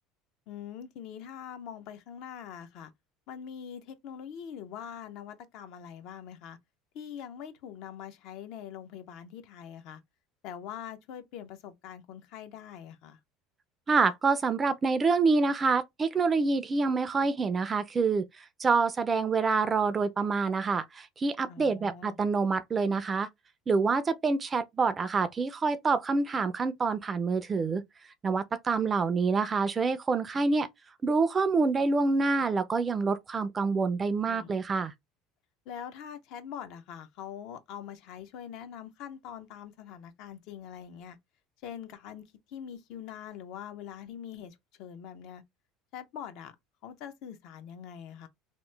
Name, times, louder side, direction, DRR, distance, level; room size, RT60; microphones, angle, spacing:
voice 1, 0.5-2.9 3.3-6.6 6.9-10.0 10.4-13.2 21.5-22.2 34.3-34.5 35.7-41.2 41.6-45.4 45.9-46.6 46.8-48.3, left 9 dB, 65° left, 0.5 m, -43 dB
voice 2, 13.9-18.2 18.6-23.3 23.7-27.8 28.2-30.7 31.0-34.9, right 4 dB, 25° right, 0.4 m, -27 dB
2.9 x 2.1 x 3.2 m
cardioid pair, 130°, 0 cm